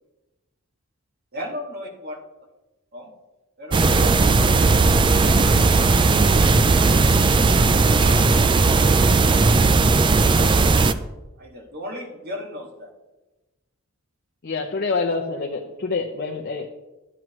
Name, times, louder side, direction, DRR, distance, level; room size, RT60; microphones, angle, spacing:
voice 1, 1.3-2.2 2.9-3.1 3.6-4.2 10.2-11.0 11.4-12.9, equal, 50° right, 0 dB, 1.9 m, -35 dB
sound 1, 3.7-10.9, right 3 dB, 25° right, 0.4 m, -17 dB
voice 2, 3.8-4.5 4.9-6.4 7.4-9.3, right 1 dB, 80° right, 1 dB, 2.1 m, -37 dB
voice 3, 14.4-16.7, left 4 dB, 50° left, 2 dB, 0.7 m, -26 dB
12.0 x 9.3 x 3.1 m, 1.1 s
head